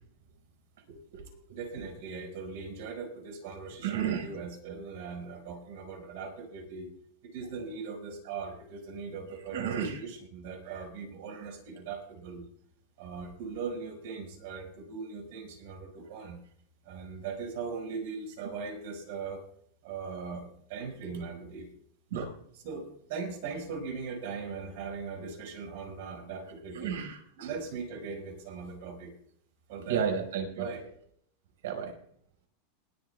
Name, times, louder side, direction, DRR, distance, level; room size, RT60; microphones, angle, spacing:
voice 1, 0.9-1.2 3.8-4.3 9.5-10.0 22.1-22.3 26.7-27.5 29.9-30.7 31.6-31.9, right 7 dB, 85° right, 4 dB, 4.8 m, -32 dB
voice 2, 1.5-6.9 7.3-12.5 13.0-16.4 16.8-19.4 19.8-21.7 22.5-27.0 27.4-29.1 29.7-30.1 30.6-30.8, right 5 dB, 50° right, 3 dB, 4.8 m, -40 dB
21.0 x 13.0 x 2.3 m, 0.64 s
supercardioid pair, 175°, 0 cm